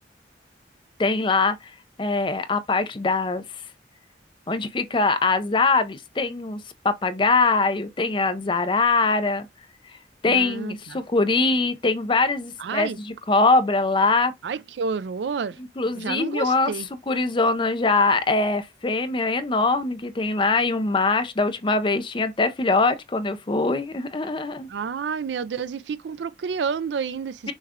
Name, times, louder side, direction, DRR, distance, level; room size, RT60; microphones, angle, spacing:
voice 1, 1.0-1.7 2.0-3.4 4.5-9.5 10.2-14.3 15.6-16.7 17.1-24.7 27.5-27.6, left 3 dB, 30° left, 0.5 m, -22 dB
voice 2, 10.3-11.0 12.6-13.0 14.4-15.6 16.0-16.9 24.7-27.5, right 5 dB, 80° right, 0.4 m, -30 dB
6.3 x 2.3 x 3.6 m
head